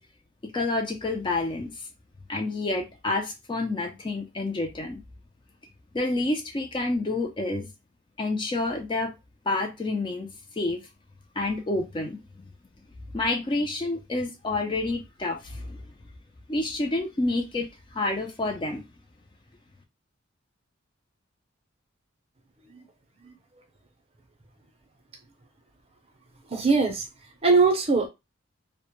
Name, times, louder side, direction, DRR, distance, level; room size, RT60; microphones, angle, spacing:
voice 1, 0.4-1.9 2.3-5.0 5.9-7.7 8.2-9.1 9.5-10.9 11.4-12.2 13.1-15.8 16.5-18.8, left 2 dB, 25° left, 0.4 m, -29 dB
voice 2, 26.5-27.1 27.4-28.1, right 4 dB, 30° right, 0.5 m, -21 dB
2.1 x 2.0 x 2.9 m
head